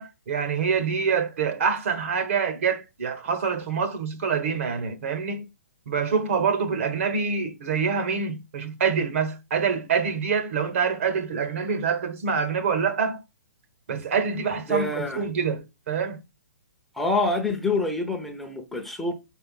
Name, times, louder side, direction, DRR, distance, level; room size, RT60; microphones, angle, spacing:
voice 1, 0.0-5.5 5.9-13.2 13.9-16.2, right 6 dB, 55° right, 1.2 m, -26 dB
voice 2, 14.7-15.2 16.9-19.1, left 2 dB, ahead, 0.8 m, -26 dB
5.2 x 4.5 x 5.4 m
hypercardioid pair, 150°, 8 cm